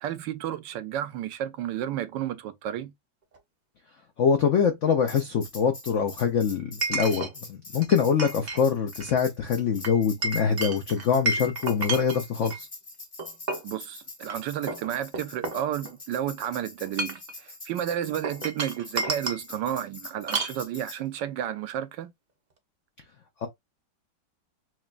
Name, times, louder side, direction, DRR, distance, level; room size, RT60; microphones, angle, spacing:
voice 1, 0.0-2.9 13.6-22.1, right 11 dB, 75° right, 1.2 m, -32 dB
Chink clink, 3.3-3.4 6.8-7.3 7.8-8.6 8.9-9.2 9.8-12.6 13.2-13.7 14.2-14.3 14.7-16.1 16.8-17.3 18.2-19.4 20.3-20.6, right 3 dB, 45° right, 0.5 m, -31 dB
voice 2, 4.2-12.7 23.4-23.5, left 7 dB, 80° left, 0.6 m, -24 dB
Tambourine, 5.1-21.0, left 2 dB, 25° left, 0.7 m, -44 dB
6.0 x 2.2 x 2.4 m
omnidirectional pair, 2.1 m